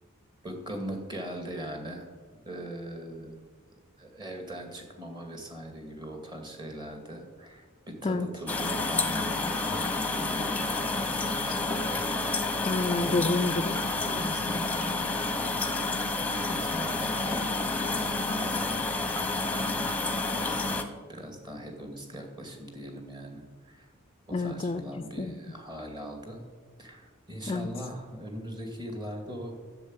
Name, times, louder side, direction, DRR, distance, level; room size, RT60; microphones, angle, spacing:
voice 1, 0.4-2.1 2.5-3.4 4.0-12.8 14.1-18.9 19.5-19.8 20.2-23.9 24.3-26.4 26.8-29.6, equal, 20° right, 3 dB, 2.2 m, -41 dB
sound 1, 8.5-20.8, left 3 dB, 5° left, 1.0 m, -29 dB
voice 2, 12.6-13.8 24.3-24.8 25.2-25.3 27.5-27.7, left 3 dB, 30° left, 10 dB, 0.5 m, -28 dB
11.5 x 7.3 x 9.6 m, 1.4 s
head